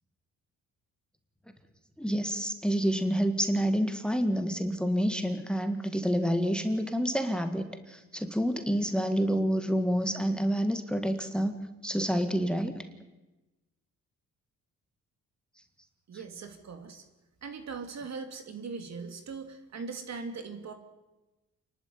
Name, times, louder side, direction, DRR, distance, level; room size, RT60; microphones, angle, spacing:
voice 1, 2.0-11.6 11.8-12.8, equal, 5° left, 8 dB, 1.8 m, -28 dB
voice 2, 16.1-17.0 17.4-20.7, right 5 dB, 55° right, 7 dB, 3.0 m, -40 dB
28.0 x 12.0 x 9.8 m, 1.1 s
cardioid pair, 85°, 32 cm